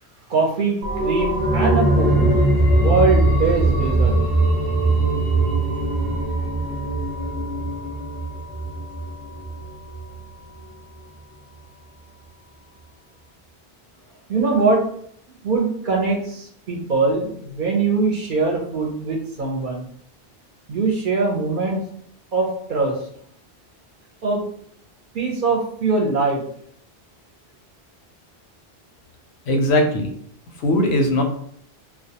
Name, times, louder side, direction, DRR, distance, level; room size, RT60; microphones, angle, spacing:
voice 1, 0.3-2.4 2.8-4.2 14.3-14.8 15.4-19.8 20.7-21.8 22.3-22.9 24.2-24.4 25.1-26.4, right 4 dB, 60° right, 0 dB, 0.7 m, -22 dB
sound 1, 0.8-10.2 10.5-10.6, right 2 dB, 15° right, 0.5 m, -21 dB
voice 2, 29.5-30.1 30.6-31.2, left 1 dB, 90° left, 4 dB, 0.8 m, -19 dB
2.2 x 2.2 x 2.7 m, 0.65 s
omnidirectional pair, 1.1 m